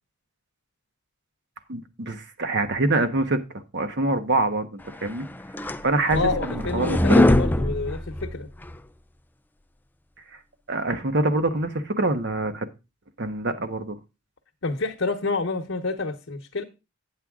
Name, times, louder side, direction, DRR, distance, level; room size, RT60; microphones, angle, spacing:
voice 1, 1.7-5.3 5.8-7.2 10.3-10.4 10.7-12.7 13.2-14.0, right 2 dB, 60° right, 1.3 m, -25 dB
sound 1, 5.1-8.8, left 1 dB, 10° left, 0.4 m, -22 dB
voice 2, 6.1-8.5 14.6-16.6, left 3 dB, 70° left, 1.0 m, -28 dB
9.4 x 8.0 x 3.7 m
head